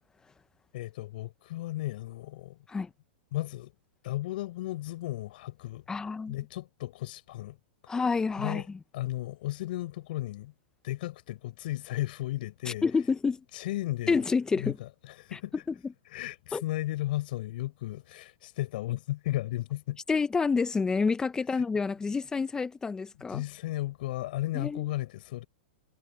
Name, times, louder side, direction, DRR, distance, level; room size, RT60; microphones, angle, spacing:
voice 1, 0.7-2.6 3.3-3.7 4.0-5.8 6.3-7.6 7.8-8.0 8.4-8.7 8.9-10.5 10.8-12.8 13.5-14.2 14.5-15.5 16.1-20.0 23.3-25.4, left 16 dB, 60° left, 5.4 m, -34 dB
voice 2, 5.9-6.4 7.9-8.6 12.7-13.4 14.1-14.8 15.3-15.4 15.7-15.9 16.5-16.6 20.1-23.4 24.5-24.9, left 4 dB, 10° left, 1.3 m, -28 dB
hypercardioid pair, 125°, 6 cm